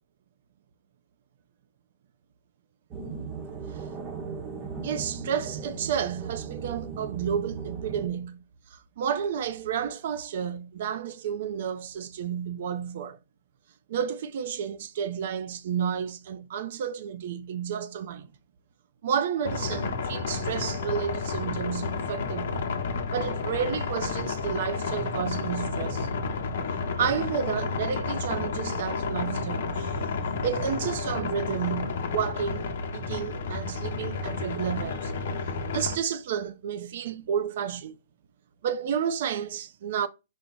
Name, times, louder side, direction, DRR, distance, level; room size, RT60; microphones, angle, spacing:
sound 1, 2.9-8.1, right 5 dB, 25° right, 0.7 m, -37 dB
voice 1, 4.8-13.2 13.9-18.3 19.0-22.7 23.1-26.1 27.0-35.1 35.6-38.0 38.6-40.1, right 8 dB, 60° right, 0.4 m, -31 dB
sound 2, 19.4-36.0, left 4 dB, 65° left, 0.8 m, -31 dB
4.7 x 2.0 x 3.9 m
hypercardioid pair, 145°, 0 cm